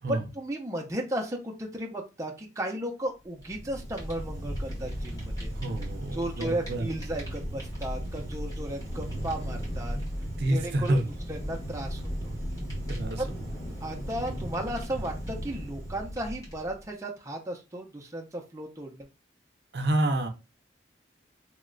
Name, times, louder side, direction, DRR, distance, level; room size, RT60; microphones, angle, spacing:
voice 1, 0.1-5.5 6.1-10.0 10.5-11.0 11.3-12.3 13.2-13.3 13.8-19.1, right 1 dB, 15° right, 0 dB, 0.5 m, -35 dB
Fire, 3.3-16.9, equal, 20° left, 1.4 m, -36 dB
voice 2, 5.6-6.9 10.4-11.1 12.9-13.2 19.7-20.3, right 1 dB, 65° right, 5 dB, 0.6 m, -28 dB
3.0 x 2.1 x 3.7 m, 0.28 s
head